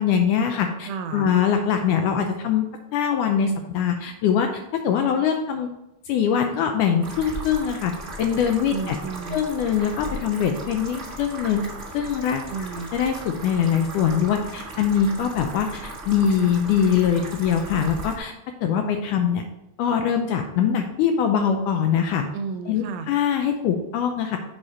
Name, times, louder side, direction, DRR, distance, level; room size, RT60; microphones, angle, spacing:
voice 1, 0.0-2.7 2.9-5.7 6.1-9.0 9.3-11.6 11.9-12.5 12.9-18.3 18.6-19.4 19.8-22.2 22.7-24.4, left 8 dB, 80° left, 4 dB, 1.9 m, -23 dB
voice 2, 0.9-1.3 8.7-9.5 12.5-12.9 22.3-23.1, right 5 dB, 85° right, 7 dB, 2.5 m, -32 dB
sound 1, 7.0-18.2, right 2 dB, 60° right, 0.7 m, -37 dB
7.4 x 4.7 x 4.3 m, 0.90 s
omnidirectional pair, 4.1 m